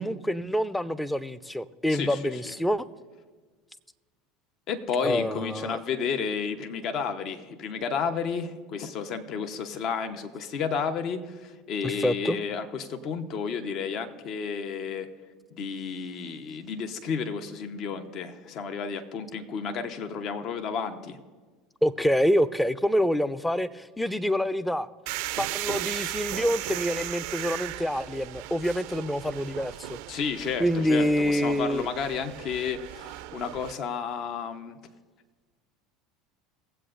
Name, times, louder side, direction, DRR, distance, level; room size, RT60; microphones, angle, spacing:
voice 1, 0.0-2.9 5.0-5.8 11.8-12.4 21.8-24.9 25.4-30.0 30.6-31.9, equal, 5° left, 0.5 m, -26 dB
voice 2, 4.7-15.1 15.5-21.2 30.1-34.8, left 6 dB, 50° left, 0.9 m, -32 dB
sound 1, 25.1-33.7, right 15 dB, 65° right, 0.4 m, -37 dB
20.0 x 7.9 x 2.5 m
hypercardioid pair, 75°, 0 cm